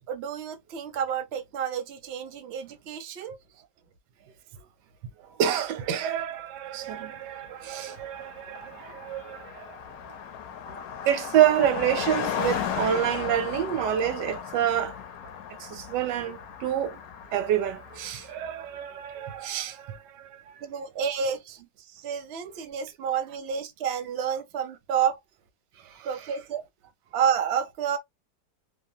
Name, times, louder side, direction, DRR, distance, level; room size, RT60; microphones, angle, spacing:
voice 1, 0.1-3.4 20.6-21.6 21.9-25.2 26.0-26.6 27.1-28.0, right 8 dB, 60° right, 0.6 m, -30 dB
voice 2, 5.4-9.8 11.0-15.0 15.6-17.0 17.3-20.4 26.0-26.3, right 10 dB, 85° right, 1.2 m, -27 dB
Car passing by, 7.2-7.3 7.5-18.5, left 8 dB, 70° left, 1.0 m, -36 dB
2.8 x 2.2 x 2.6 m
omnidirectional pair, 1.8 m